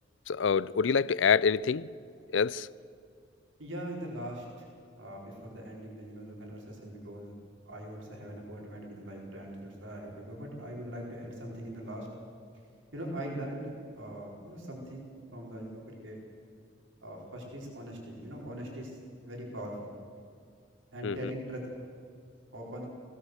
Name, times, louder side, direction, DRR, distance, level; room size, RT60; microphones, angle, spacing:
voice 1, 0.3-1.9 2.3-2.7 21.0-21.3, left 6 dB, 70° left, 0.5 m, -26 dB
voice 2, 3.6-7.3 7.6-12.1 12.9-16.2 17.0-19.0 19.2-19.9 20.9-21.6 22.5-22.9, right 1 dB, 90° right, 4.5 m, -41 dB
20.5 x 17.0 x 8.0 m
head